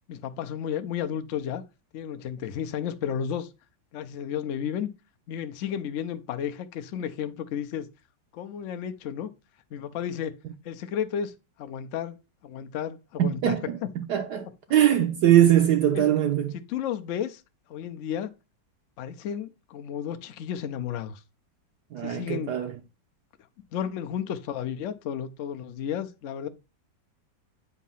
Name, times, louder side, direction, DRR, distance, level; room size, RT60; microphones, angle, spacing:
voice 1, 0.1-1.6 1.9-3.5 3.9-4.9 5.3-7.9 8.3-9.3 9.7-10.4 10.6-11.3 11.6-12.2 12.4-13.9 15.9-16.2 16.5-17.4 17.7-18.3 19.0-21.2 22.0-22.5 23.7-26.5, left 9 dB, 75° left, 0.7 m, -32 dB
voice 2, 13.2-13.8 14.1-16.5 21.9-22.7, right 11 dB, 70° right, 1.1 m, -21 dB
8.2 x 2.7 x 5.5 m
omnidirectional pair, 2.0 m